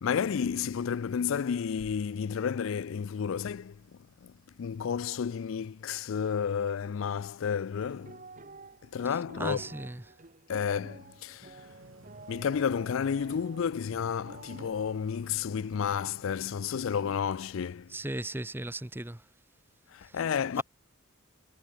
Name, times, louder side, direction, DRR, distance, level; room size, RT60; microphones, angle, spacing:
voice 1, 0.0-8.2 8.8-9.6 10.5-11.6 12.3-18.0 19.9-20.6, left 7 dB, 70° left, 0.4 m, -31 dB
sound 1, 7.8-14.7, right 3 dB, 40° right, 1.7 m, -50 dB
voice 2, 9.4-10.0 17.9-19.2 20.0-20.2, right 1 dB, 10° right, 0.6 m, -36 dB
sound 2, 11.6-17.3, right 1 dB, 85° right, 3.7 m, -56 dB
head